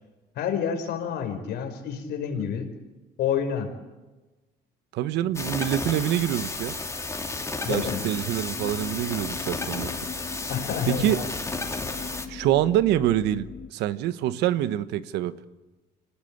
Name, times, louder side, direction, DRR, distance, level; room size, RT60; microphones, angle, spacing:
voice 1, 0.3-2.7 3.2-3.7 7.6-8.0 10.5-11.3, left 7 dB, 75° left, 6 dB, 5.0 m, -28 dB
voice 2, 4.9-6.7 7.7-10.0 10.9-11.2 12.3-15.3, right 12 dB, 85° right, 13 dB, 1.3 m, -25 dB
sound 1, 5.3-12.3, left 3 dB, 15° left, 3.0 m, -33 dB
sound 2, 6.9-13.7, left 6 dB, 45° left, 1.4 m, -41 dB
26.0 x 19.0 x 8.7 m, 1.2 s
cardioid pair, 110°, 17 cm